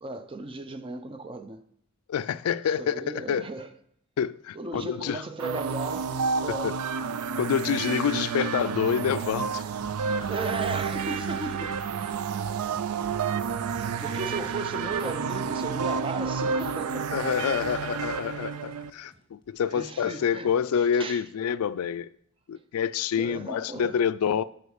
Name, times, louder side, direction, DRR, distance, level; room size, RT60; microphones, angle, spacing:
voice 1, 0.0-1.7 2.8-3.7 4.5-6.1 6.4-6.8 7.1-7.4 10.3-11.8 13.5-17.6 19.7-21.3 23.1-24.0, right 3 dB, 25° right, 0.5 m, -36 dB
voice 2, 2.1-3.5 4.2-5.2 6.5-6.7 7.4-9.6 17.1-22.1 22.5-24.4, left 8 dB, 80° left, 0.3 m, -27 dB
sound 1, 5.4-18.9, right 6 dB, 85° right, 0.4 m, -30 dB
sound 2, 9.8-19.9, left 1 dB, 20° left, 1.3 m, -53 dB
8.3 x 4.9 x 6.4 m
head